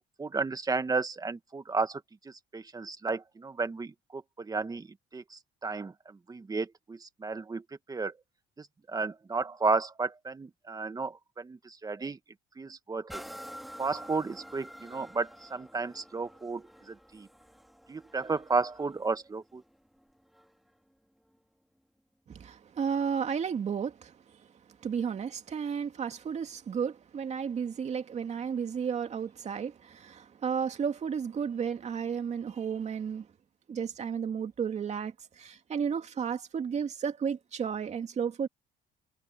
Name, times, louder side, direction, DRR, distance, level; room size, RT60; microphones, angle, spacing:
voice 1, 0.2-4.9 5.1-7.6 7.9-8.1 8.6-12.2 12.6-13.2 13.8-17.3 17.9-19.6, right 4 dB, 20° right, 1.5 m, -33 dB
sound 1, 13.1-20.7 21.3-21.4, equal, ahead, 2.6 m, -49 dB
voice 2, 22.3-24.5 24.8-33.3 33.7-38.5, right 7 dB, 40° right, 2.5 m, -33 dB
cardioid pair, 110°, 17 cm